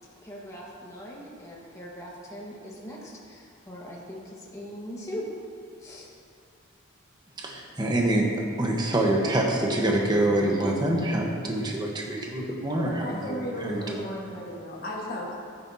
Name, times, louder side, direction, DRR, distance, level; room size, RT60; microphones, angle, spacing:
voice 1, 0.2-5.3 5.8-6.1, equal, 15° left, -4 dB, 1.5 m, -40 dB
voice 2, 7.4-8.3 8.6-14.0, right 1 dB, 20° right, -1 dB, 1.1 m, -26 dB
voice 3, 12.7-15.4, equal, 45° left, -4 dB, 1.6 m, -35 dB
13.5 x 9.6 x 2.8 m, 2.5 s
head